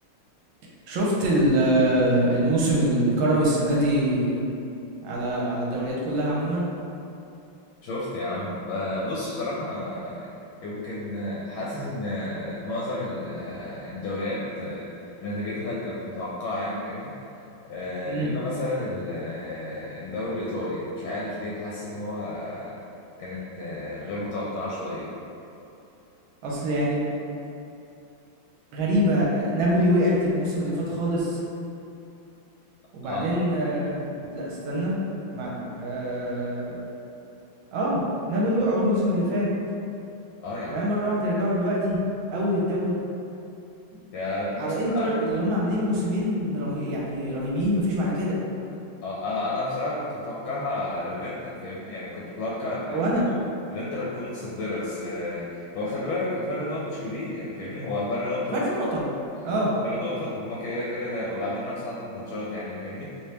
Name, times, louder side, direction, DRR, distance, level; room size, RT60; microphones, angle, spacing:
voice 1, 0.9-4.5 5.0-6.7 18.1-18.3 26.4-27.0 28.7-31.4 32.9-35.0 35.3-36.8 37.7-39.5 40.7-42.0 42.3-42.9 44.6-48.4 52.8-53.2 58.5-59.0 59.4-59.7, equal, 75° right, -4 dB, 1.4 m, -24 dB
voice 2, 7.8-10.3 10.6-14.9 15.2-17.1 17.7-22.8 23.2-25.1 33.0-33.4 40.4-40.8 44.1-45.1 49.0-53.0 53.7-58.7 59.8-63.2, left 2 dB, 80° left, -6 dB, 1.3 m, -31 dB
3.3 x 3.2 x 2.8 m, 2.7 s
omnidirectional pair, 2.2 m